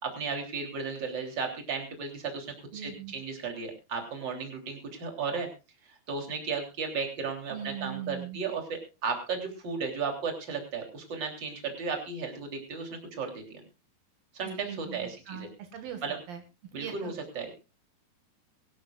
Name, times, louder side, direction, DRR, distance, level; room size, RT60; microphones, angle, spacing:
voice 1, 0.0-5.5 5.9-13.6 14.3-15.5 16.0-16.2 16.7-17.5, right 5 dB, 30° right, 3 dB, 3.6 m, -35 dB
voice 2, 2.7-3.1 7.5-8.4 14.4-16.0 16.3-16.4 16.8-17.1, right 8 dB, 75° right, 6 dB, 3.3 m, -40 dB
23.0 x 13.0 x 2.4 m, 0.30 s
omnidirectional pair, 4.2 m